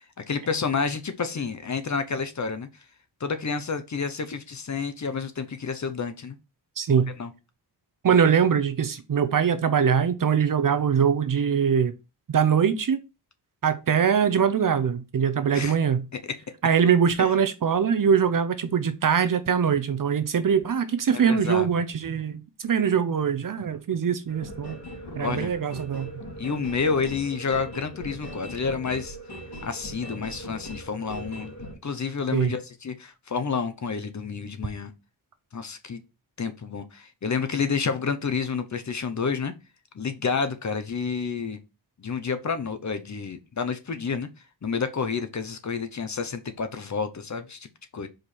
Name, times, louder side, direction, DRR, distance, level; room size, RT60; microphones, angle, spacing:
voice 1, 0.0-2.7 3.2-6.4 7.2-7.3 15.5-15.8 16.3-16.4 17.2-17.3 21.1-21.7 25.2-25.5 26.4-29.2 29.6-31.5 31.8-34.9 35.5-36.0 36.4-39.5 39.9-41.6 42.0-44.3 44.6-47.7 47.9-48.1, left 5 dB, 40° left, 0.8 m, -29 dB
voice 2, 6.8-7.1 8.0-11.9 12.3-13.0 13.6-16.0 16.6-24.8 25.2-26.1 32.3-32.5, right 7 dB, 50° right, 0.7 m, -22 dB
sound 1, 24.3-31.7, equal, 65° left, 2.9 m, -40 dB
5.1 x 4.5 x 4.2 m
wide cardioid pair, 160°, 42 cm